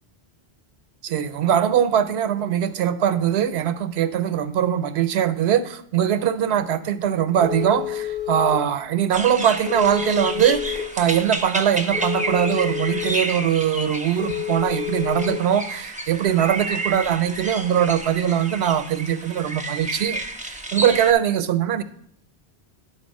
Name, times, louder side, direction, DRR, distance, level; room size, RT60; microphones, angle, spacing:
voice 1, 1.0-21.8, right 9 dB, 85° right, 0.9 m, -21 dB
Telephone, 7.4-8.5 9.7-10.8 11.9-13.0 14.2-15.3, left 11 dB, 60° left, 3.0 m, -29 dB
sound 1, 9.1-21.1, right 2 dB, 10° right, 0.4 m, -31 dB
10.0 x 4.2 x 5.2 m
omnidirectional pair, 1.1 m